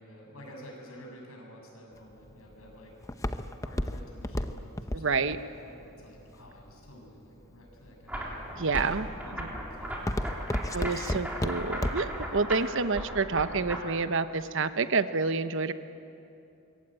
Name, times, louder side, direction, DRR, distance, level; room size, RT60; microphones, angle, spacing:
voice 1, 0.0-2.9 3.3-8.7 9.2-10.8, equal, 75° left, 0 dB, 7.3 m, -50 dB
Walk footsteps, 1.9-7.1 7.7-8.1 8.6-9.0 9.3-12.2 12.6-12.7, left 1 dB, 15° left, 0.8 m, -32 dB
voice 2, 4.9-5.4 8.6-9.1 10.7-15.7, right 4 dB, 60° right, 11 dB, 0.9 m, -28 dB
sound 1, 8.1-13.8, equal, 5° right, 3.7 m, -37 dB
25.0 x 23.0 x 9.0 m, 2.7 s
head